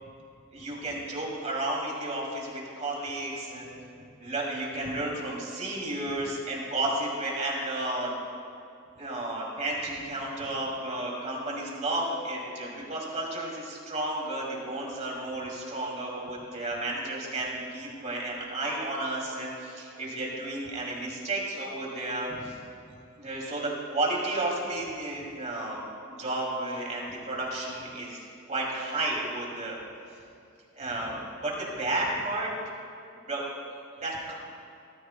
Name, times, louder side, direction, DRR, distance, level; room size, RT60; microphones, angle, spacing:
voice 1, 0.5-3.7 4.2-8.1 9.0-22.6 23.2-29.8 30.8-32.5 33.3-33.4 34.0-34.3, right 2 dB, 35° right, -2 dB, 2.5 m, -32 dB
18.0 x 14.5 x 2.2 m, 2.6 s
head